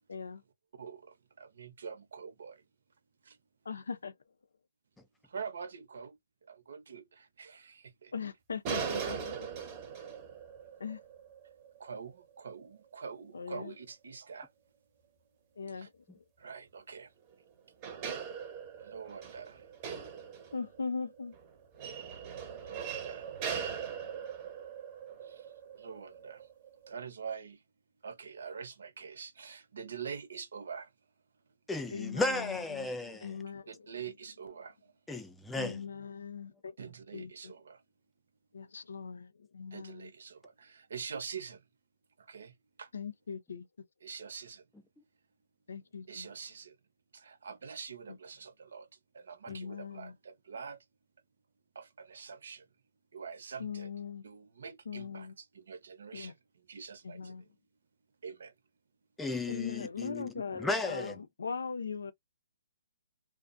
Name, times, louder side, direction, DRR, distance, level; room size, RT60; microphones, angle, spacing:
voice 1, 0.1-0.4 3.7-4.1 8.1-9.4 10.8-11.0 13.3-13.7 15.6-15.9 20.5-21.3 31.9-32.2 32.7-32.9 33.2-33.6 35.6-36.5 37.1-37.3 38.5-40.1 42.9-43.7 45.7-46.3 49.5-50.1 53.6-54.2 54.9-55.3 56.1-56.3 57.0-57.4 59.5-61.1 61.4-62.1, left 5 dB, 85° left, 0.5 m, -39 dB
voice 2, 0.8-2.6 3.2-3.4 5.3-6.2 6.4-8.1 11.8-14.5 15.7-15.9 16.4-17.1 18.8-19.7 22.6-23.3 25.2-25.5 25.8-26.5 26.9-27.6 28.0-30.9 33.7-34.9 36.8-37.8 39.7-41.6 42.2-42.9 44.0-44.6 46.1-46.8 47.1-48.9 49.1-50.8 51.7-52.7 53.1-53.9 54.2-56.4 56.7-57.5 58.2-58.5, right 6 dB, 70° right, 0.7 m, -45 dB
sound 1, 8.6-12.6 17.3-17.4 17.8-26.9, right 7 dB, 30° right, 0.7 m, -40 dB
voice 3, 31.7-33.3 35.1-35.8 49.5-49.6 59.2-61.2, left 2 dB, 5° left, 0.4 m, -35 dB
2.4 x 2.0 x 2.5 m
hypercardioid pair, 150°, 0 cm